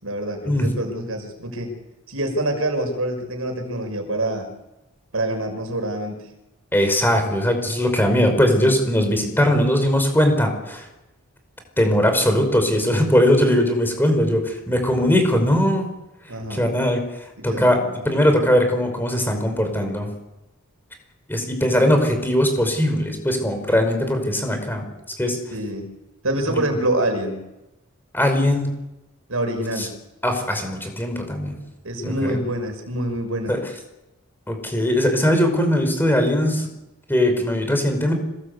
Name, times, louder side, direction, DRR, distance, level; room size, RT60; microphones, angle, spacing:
voice 1, 0.0-1.7 2.1-4.5 5.1-6.2 16.3-16.7 17.4-17.9 21.7-22.0 25.5-25.9 26.2-27.4 29.3-29.9 31.8-33.5, right 1 dB, 80° right, 5 dB, 6.1 m, -26 dB
voice 2, 6.7-10.9 11.8-15.9 16.5-17.0 17.4-20.1 21.3-24.8 25.2-25.4 26.5-26.6 28.1-28.7 29.8-29.9 30.2-31.5 32.0-32.4 33.5-33.6 34.5-36.7 37.1-38.1, equal, 10° left, 5 dB, 5.3 m, -20 dB
26.5 x 20.5 x 8.3 m, 0.94 s
head